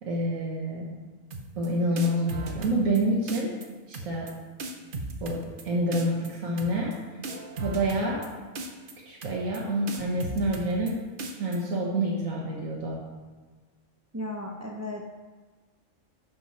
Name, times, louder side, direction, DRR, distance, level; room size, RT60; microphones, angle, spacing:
voice 1, 0.0-0.9 1.6-3.6 3.9-4.3 5.2-7.2 7.6-8.3 9.0-10.9 11.3-13.0, right 1 dB, 85° right, -4 dB, 1.7 m, -28 dB
sound 1, 1.3-1.7 2.0-3.0 3.3-3.7 3.9-4.3 4.6-5.6 5.9-6.3 6.6-7.0 7.2-8.3 8.6-8.9 9.2-9.6 9.9-10.9 11.2-11.6, right 2 dB, 45° right, 0.9 m, -36 dB
voice 2, 14.1-15.0, left 1 dB, 15° right, -1 dB, 0.6 m, -35 dB
11.5 x 5.4 x 4.3 m, 1.4 s
omnidirectional pair, 1.4 m